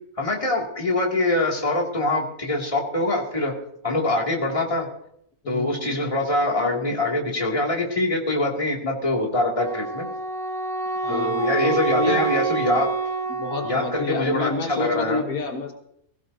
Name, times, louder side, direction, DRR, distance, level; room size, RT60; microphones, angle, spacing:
voice 1, 0.2-3.5 3.8-4.9 5.5-10.1 11.1-12.9 13.6-15.2, left 2 dB, 20° left, -2 dB, 2.6 m, -24 dB
voice 2, 5.4-6.0 11.0-12.3 13.3-15.7, left 3 dB, 75° left, 3 dB, 1.7 m, -29 dB
Wind instrument woodwind instrument, 9.6-14.4, right 4 dB, 45° right, 0.8 m, -27 dB
20.5 x 16.5 x 2.8 m, 0.73 s
omnidirectional pair, 1.6 m